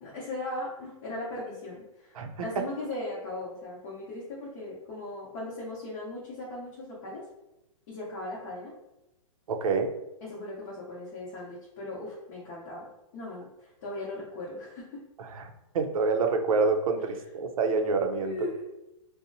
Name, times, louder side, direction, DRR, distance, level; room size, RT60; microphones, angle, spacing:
voice 1, 0.0-7.3 7.9-8.7 10.2-12.9 13.1-15.0 18.2-18.7, left 2 dB, 40° left, -6 dB, 0.7 m, -38 dB
voice 2, 9.5-9.9 15.2-15.4 15.7-18.3, right 4 dB, 80° right, 5 dB, 0.5 m, -27 dB
2.7 x 2.0 x 2.6 m, 0.92 s
hypercardioid pair, 155°, 18 cm